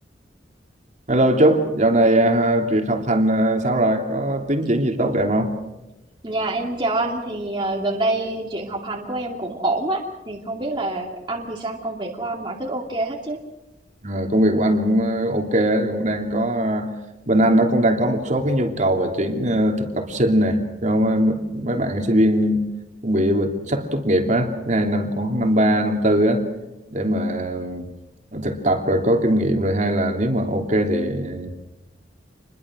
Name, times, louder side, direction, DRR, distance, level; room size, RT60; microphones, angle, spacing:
voice 1, 1.1-5.5 14.0-16.9 17.3-22.6 23.0-26.4 26.9-27.8 28.3-31.5, right 1 dB, 40° right, 3 dB, 3.1 m, -20 dB
voice 2, 6.2-13.4, right 2 dB, 25° right, -1 dB, 2.6 m, -26 dB
28.0 x 22.0 x 6.4 m, 0.97 s
head